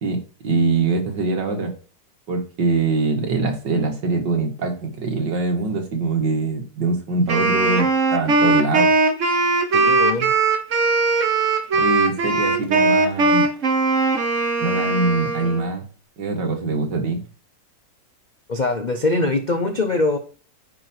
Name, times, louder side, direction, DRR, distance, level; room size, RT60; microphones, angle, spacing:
voice 1, 0.0-1.7 2.3-9.0 11.8-13.5 14.6-15.9 16.2-17.2, right 3 dB, 75° right, 2.5 m, -23 dB
Wind instrument woodwind instrument, 7.3-15.7, right 3 dB, 45° right, 1.5 m, -19 dB
voice 2, 9.7-10.3 11.7-11.8 18.5-20.2, left 2 dB, 50° left, 0.5 m, -22 dB
9.9 x 4.8 x 4.6 m
omnidirectional pair, 1.9 m